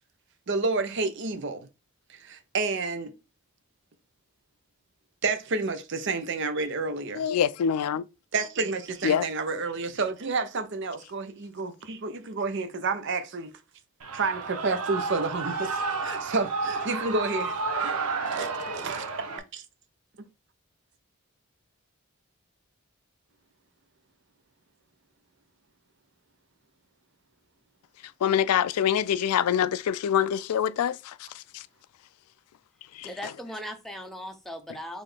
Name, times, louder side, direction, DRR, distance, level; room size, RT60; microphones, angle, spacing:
voice 1, 0.5-1.7 2.1-3.1 5.2-7.2 8.3-13.5 14.1-18.0 18.3-19.1 19.5-19.6, right 3 dB, 55° right, 0.6 m, -30 dB
voice 2, 7.1-8.0 9.0-9.3 28.2-31.7 32.9-33.1, left 9 dB, 85° left, 0.3 m, -25 dB
Shout / Cheering, 14.0-19.4, right 4 dB, 85° right, 0.8 m, -31 dB
voice 3, 33.0-35.0, equal, ahead, 0.6 m, -38 dB
4.1 x 3.2 x 3.2 m
head